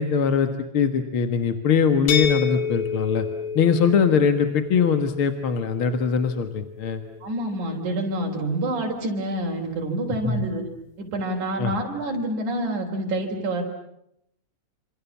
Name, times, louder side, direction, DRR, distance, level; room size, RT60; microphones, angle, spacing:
voice 1, 0.0-3.3 3.5-7.0 10.2-10.5 11.6-11.7, left 6 dB, 50° left, 8 dB, 2.0 m, -22 dB
sound 1, 2.1-7.9, left 6 dB, 70° left, 3.6 m, -31 dB
voice 2, 7.2-10.6 11.0-13.6, right 1 dB, 90° right, 0 dB, 5.2 m, -27 dB
28.5 x 27.5 x 7.2 m, 0.77 s
omnidirectional pair, 3.3 m